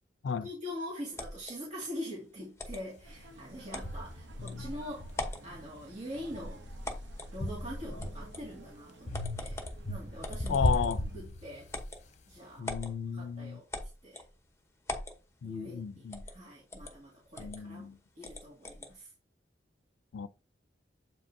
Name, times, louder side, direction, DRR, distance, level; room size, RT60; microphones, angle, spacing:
voice 1, 0.4-5.1 5.4-6.7 7.3-9.6 9.9-11.6 12.3-12.7 13.1-13.7 14.0-14.2 15.4-17.9 18.2-19.1, equal, 40° right, 2.1 m, -43 dB
sound 1, 1.2-1.5 2.6-2.8 3.7-3.9 4.5-4.6 5.1-5.5 6.8-7.3 8.0-8.4 9.1-9.8 10.2-11.1 11.7-12.0 12.6-12.9 13.7-14.3 14.9-15.2 16.1-16.4 16.7-16.9 17.3-17.6 18.2-18.9, left 1 dB, 15° left, 1.0 m, -40 dB
sound 2, 3.0-3.1 3.8-5.7 6.1-8.5 9.1-11.8, left 1 dB, 40° left, 0.9 m, -36 dB
sound 3, 3.0-11.3, right 2 dB, 85° right, 0.9 m, -54 dB
voice 2, 10.5-11.0 12.6-13.6 15.4-16.2 17.4-18.0 20.1-20.3, left 6 dB, 85° left, 0.4 m, -34 dB
7.7 x 5.1 x 2.7 m
head